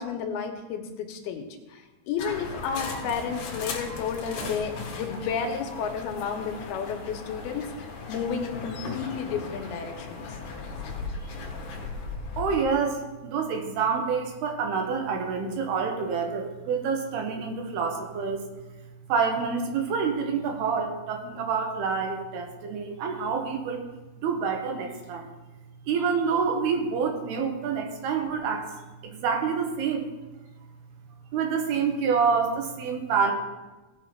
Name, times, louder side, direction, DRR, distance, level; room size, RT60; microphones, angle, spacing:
voice 1, 0.0-7.7 8.1-10.3, left 6 dB, 80° left, 4 dB, 2.9 m, -32 dB
sound 1, 2.2-12.6, left 4 dB, 60° left, 2.5 m, -37 dB
voice 2, 12.4-18.4 19.1-23.8 24.2-25.3 25.9-28.7 29.0-30.1 31.3-33.3, right 5 dB, 80° right, 3 dB, 3.3 m, -27 dB
17.0 x 7.0 x 4.5 m, 1.1 s
omnidirectional pair, 4.6 m